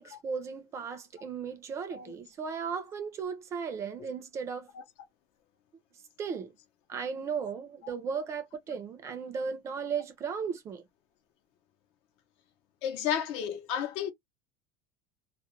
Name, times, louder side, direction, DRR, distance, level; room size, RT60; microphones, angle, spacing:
voice 1, 0.0-4.7 6.2-6.5 6.9-10.8, right 6 dB, 25° right, 0.5 m, -36 dB
voice 2, 12.8-14.1, left 9 dB, 55° left, 0.7 m, -32 dB
2.2 x 2.1 x 2.9 m
cardioid pair, 170°, 12 cm